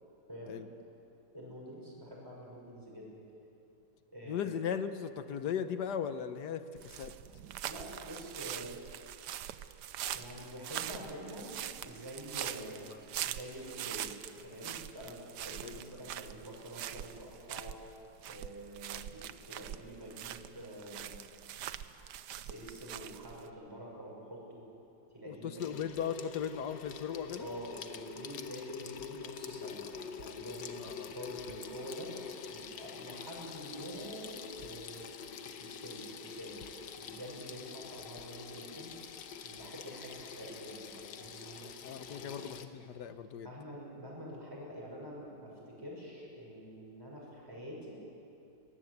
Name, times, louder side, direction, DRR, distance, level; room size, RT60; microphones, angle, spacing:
voice 1, 0.3-0.6 1.3-3.2 4.1-4.5 7.6-8.8 10.1-11.5 11.8-12.9 13.2-14.1 14.4-17.7 18.3-21.2 22.4-24.6 25.1-25.8 27.4-29.8 30.2-32.1 32.5-35.0 35.4-38.9 39.4-41.7 42.1-42.4 43.4-48.0, equal, 10° right, -4 dB, 6.4 m, -46 dB
voice 2, 4.3-7.2 15.6-15.8 25.2-27.5 30.8-31.6 41.8-43.5, left 8 dB, 70° left, 10 dB, 1.5 m, -38 dB
sound 1, 6.8-23.5, right 11 dB, 75° right, 1.3 m, -43 dB
Water tap faucet / Sink (filling or washing), 25.6-42.7, left 7 dB, 85° left, 1.7 m, -46 dB
23.5 x 19.0 x 8.1 m, 2.7 s
omnidirectional pair, 1.9 m